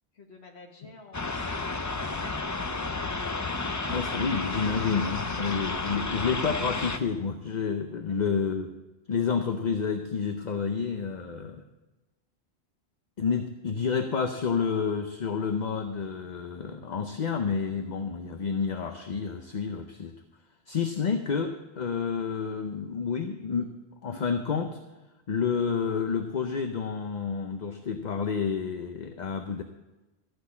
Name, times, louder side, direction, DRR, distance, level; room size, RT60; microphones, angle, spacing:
voice 1, 0.1-2.3 8.1-8.2, left 3 dB, 70° left, 1 dB, 1.7 m, -51 dB
sound 1, 1.1-7.0, left 3 dB, 25° left, 0.4 m, -32 dB
voice 2, 3.9-8.7 9.1-11.6 13.2-20.1 20.7-23.7 24.0-24.8 25.3-29.6, left 6 dB, 45° left, 6 dB, 0.8 m, -29 dB
14.0 x 6.3 x 8.4 m, 1.1 s
omnidirectional pair, 1.1 m